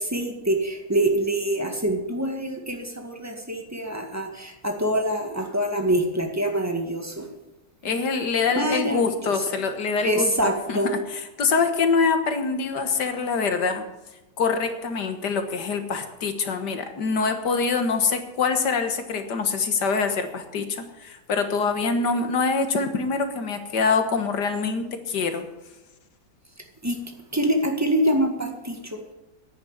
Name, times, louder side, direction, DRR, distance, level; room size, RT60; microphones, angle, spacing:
voice 1, 0.0-7.3 8.6-9.4 10.0-10.9 26.8-27.0 27.3-29.1, right 1 dB, 10° right, 3 dB, 1.8 m, -25 dB
voice 2, 7.8-10.3 10.7-13.8 14.4-25.4, left 4 dB, 70° left, 7 dB, 2.0 m, -25 dB
10.5 x 9.4 x 9.8 m, 1.0 s
omnidirectional pair, 2.0 m